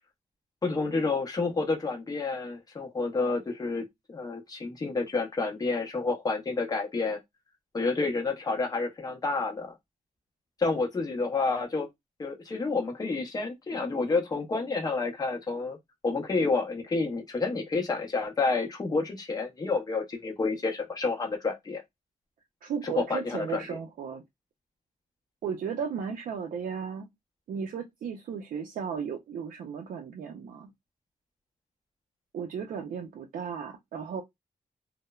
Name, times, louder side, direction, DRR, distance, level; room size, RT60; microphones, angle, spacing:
voice 1, 0.6-3.8 4.1-7.2 7.7-9.7 10.6-11.9 12.2-15.8 16.0-21.8 22.8-23.5, left 3 dB, 25° left, 0.6 m, -29 dB
voice 2, 22.6-24.2 25.4-27.1 27.5-30.7 32.3-34.2, right 6 dB, 80° right, 0.4 m, -35 dB
3.0 x 2.0 x 2.2 m
wide cardioid pair, 160°, 14 cm